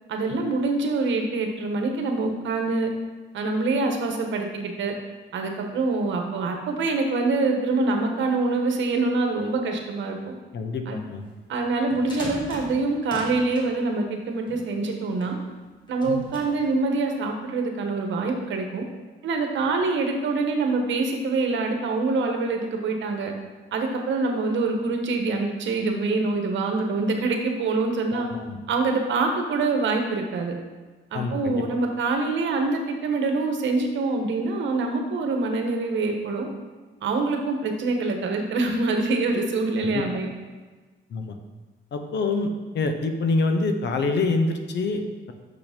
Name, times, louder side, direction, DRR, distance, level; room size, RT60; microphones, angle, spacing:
voice 1, 0.1-2.9 3.3-4.9 5.3-10.2 10.9-11.0 11.5-15.4 15.9-18.8 19.2-23.3 23.7-28.3 28.7-30.5 31.1-36.5 37.0-40.3, right 3 dB, 70° right, 3 dB, 1.2 m, -25 dB
voice 2, 10.5-11.2 16.1-16.2 28.1-28.6 31.1-31.6 39.8-40.0 41.1-41.3 41.9-42.5 42.7-45.3, left 3 dB, 60° left, 6 dB, 0.9 m, -26 dB
sound 1, 11.8-13.7 14.5-15.4 15.9-16.7, equal, 20° left, 2.0 m, -39 dB
6.1 x 6.0 x 5.2 m, 1.3 s
cardioid pair, 90°, 20 cm